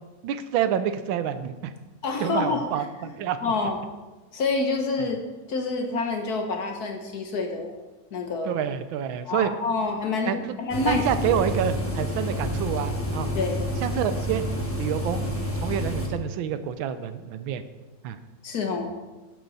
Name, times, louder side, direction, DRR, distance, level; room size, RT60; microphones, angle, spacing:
voice 1, 0.2-1.7 2.2-3.4 5.0-5.1 8.4-9.5 10.2-10.6 10.8-13.3 13.8-14.4 14.8-15.2 15.5-17.6 18.0-18.2, right 9 dB, 85° right, 11 dB, 1.4 m, -28 dB
voice 2, 2.0-2.7 3.4-3.8 4.3-5.2 5.5-7.7 8.1-8.6 9.3-11.0 11.3-11.4 13.3-13.6 18.4-18.9, left 3 dB, 55° left, 3 dB, 1.4 m, -27 dB
sound 1, 10.7-16.1, equal, 10° left, 0.9 m, -29 dB
11.5 x 7.8 x 4.1 m, 1.2 s
omnidirectional pair, 2.2 m